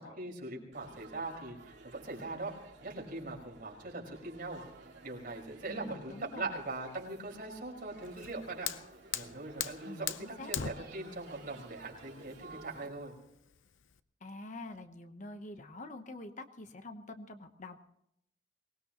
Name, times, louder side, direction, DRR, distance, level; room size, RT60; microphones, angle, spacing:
voice 1, 0.0-2.5 2.8-4.6 5.0-8.7 9.1-13.2, right 2 dB, 50° right, 0 dB, 5.1 m, -41 dB
Laughter / Chatter / Crowd, 0.7-12.9, right 3 dB, 65° right, 2.5 m, -54 dB
voice 2, 5.7-6.6 9.8-10.7 14.2-17.8, left 2 dB, 40° left, 8 dB, 1.0 m, -46 dB
Fire, 8.0-14.0, left 9 dB, 90° left, 0.7 m, -41 dB
24.0 x 19.5 x 3.0 m, 0.76 s
head